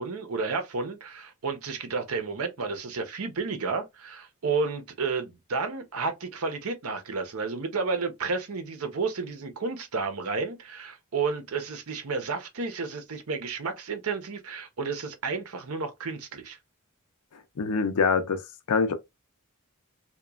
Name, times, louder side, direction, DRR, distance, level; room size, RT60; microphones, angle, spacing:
voice 1, 0.0-16.6, right 4 dB, 75° right, 0.7 m, -31 dB
voice 2, 17.6-18.4 18.7-18.9, left 5 dB, 85° left, 0.5 m, -24 dB
2.9 x 2.2 x 2.3 m
head